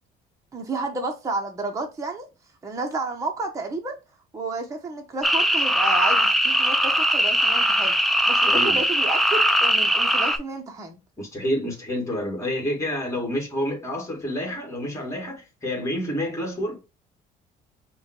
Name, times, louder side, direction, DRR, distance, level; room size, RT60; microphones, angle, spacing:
voice 1, 0.5-2.3 2.6-4.0 4.3-11.0, right 3 dB, 20° right, 0.8 m, -31 dB
sound 1, 5.2-10.4, equal, ahead, 0.4 m, -20 dB
voice 2, 8.4-8.8 11.2-16.8, left 1 dB, 15° left, 1.9 m, -28 dB
5.3 x 2.3 x 2.9 m
cardioid pair, 110°, 17 cm